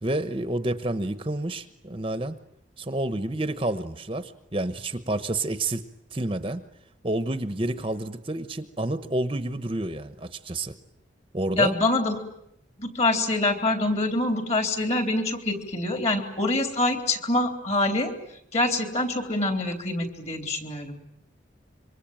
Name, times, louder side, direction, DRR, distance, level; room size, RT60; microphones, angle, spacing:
voice 1, 0.0-2.4 2.8-5.8 6.1-6.6 7.0-10.7 11.3-11.8, right 1 dB, 25° right, 11 dB, 1.0 m, -29 dB
voice 2, 11.6-12.2 12.8-18.1 18.5-21.0, left 2 dB, 35° left, 6 dB, 3.7 m, -25 dB
26.5 x 24.0 x 9.0 m, 0.74 s
head